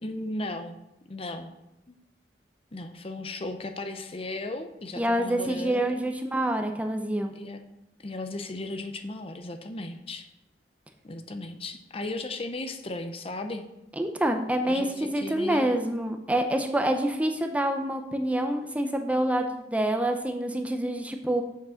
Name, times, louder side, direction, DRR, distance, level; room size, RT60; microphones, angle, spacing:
voice 1, 0.0-0.8 1.1-1.5 1.9-2.0 2.7-6.0 7.3-7.6 8.0-10.3 11.0-13.7 14.6-15.8, left 2 dB, 35° left, 7 dB, 0.7 m, -36 dB
voice 2, 5.0-7.3 14.0-21.4, right 1 dB, 10° right, 4 dB, 0.6 m, -27 dB
7.4 x 6.0 x 6.3 m, 0.89 s
head